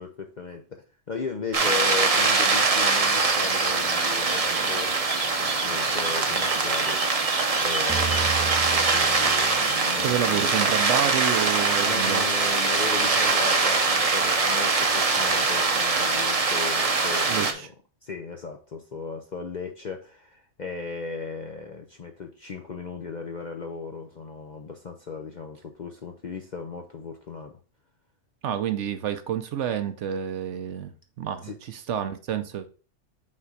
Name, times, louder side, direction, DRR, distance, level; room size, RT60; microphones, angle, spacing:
voice 1, 0.0-10.5 11.8-17.7 18.0-27.6 31.4-31.6, left 4 dB, 45° left, 0.6 m, -37 dB
sound 1, 1.5-17.5, right 3 dB, 35° right, 0.7 m, -23 dB
sound 2, 7.9-10.8, right 8 dB, 5° left, 1.2 m, -35 dB
voice 2, 10.0-12.2 17.3-17.7 28.4-32.7, right 9 dB, 65° right, 0.9 m, -29 dB
5.7 x 3.8 x 4.8 m
omnidirectional pair, 1.4 m